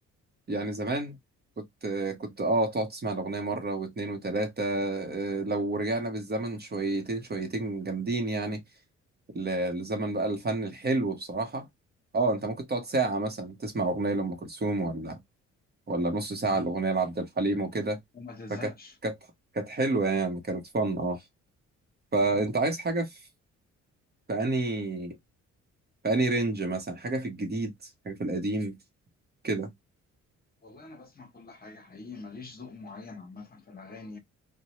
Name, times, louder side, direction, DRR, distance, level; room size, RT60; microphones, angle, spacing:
voice 1, 0.5-1.2 1.6-8.6 9.3-11.7 12.1-15.2 15.9-18.0 18.5-18.7 19.0-19.1 19.5-21.2 22.1-23.2 24.3-25.2 26.0-27.7 28.0-28.8 29.4-29.7, right 2 dB, 35° right, 1.0 m, -29 dB
voice 2, 18.1-19.0 30.6-34.2, left 3 dB, 30° left, 1.0 m, -44 dB
2.6 x 2.2 x 3.0 m
cardioid pair, 90°, 30 cm